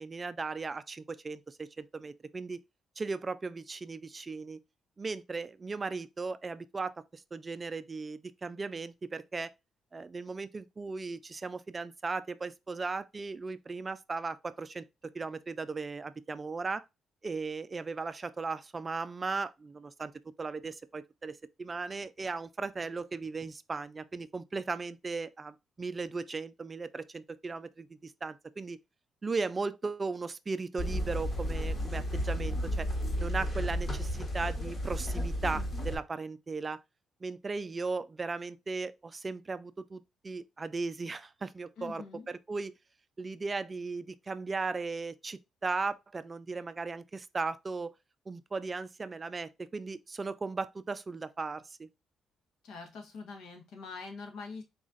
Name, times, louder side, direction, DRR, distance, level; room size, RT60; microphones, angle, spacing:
voice 1, 0.0-2.6 3.0-4.6 5.0-9.5 9.9-14.8 15.1-16.8 17.2-20.1 20.4-28.8 29.2-32.9 33.2-36.8 37.2-42.7 43.2-47.9 48.3-51.9, right 4 dB, 30° right, 0.3 m, -37 dB
sound 1, 30.8-35.9, equal, 35° left, 1.3 m, -33 dB
voice 2, 41.8-42.3 52.6-54.6, left 4 dB, 75° left, 1.2 m, -44 dB
4.1 x 2.4 x 3.8 m
cardioid pair, 90°, 0 cm